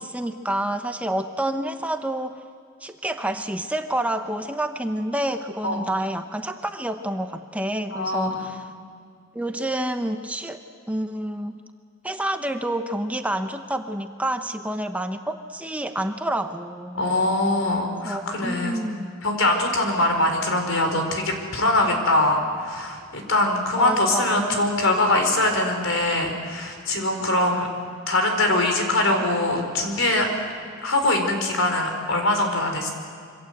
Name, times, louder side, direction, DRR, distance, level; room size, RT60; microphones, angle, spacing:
voice 1, 0.0-2.4 2.8-8.7 9.3-10.6 10.9-11.6 12.0-17.0 18.0-19.1 23.8-24.5, right 1 dB, 5° right, 7 dB, 0.8 m, -28 dB
voice 2, 7.9-8.5 16.9-18.8 19.2-27.7 28.1-30.3 30.8-32.9, left 1 dB, 75° left, 4 dB, 4.4 m, -22 dB
26.5 x 24.5 x 7.9 m, 2.3 s
head